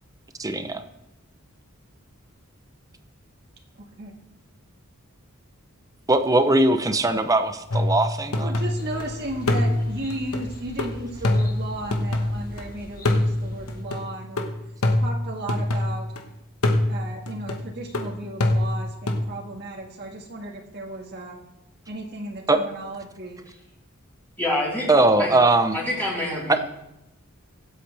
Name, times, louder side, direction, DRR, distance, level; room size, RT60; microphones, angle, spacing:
voice 1, 0.4-0.8 6.1-8.5 22.5-22.6 24.9-25.8, right 2 dB, 15° right, 9 dB, 0.7 m, -20 dB
voice 2, 3.8-4.1 8.4-14.5 15.0-16.1 16.9-21.4 21.9-23.4, right 1 dB, 50° right, 0 dB, 1.7 m, -35 dB
sound 1, 7.7-9.0 9.5-12.6 13.0-16.2 16.6-19.3, left 1 dB, 85° left, 1.3 m, -25 dB
sound 2, 8.8-13.8, left 2 dB, 45° left, 1.8 m, -40 dB
voice 3, 24.4-25.4 25.7-26.7, left 1 dB, 10° left, -7 dB, 4.1 m, -27 dB
24.0 x 8.3 x 3.4 m, 0.88 s
head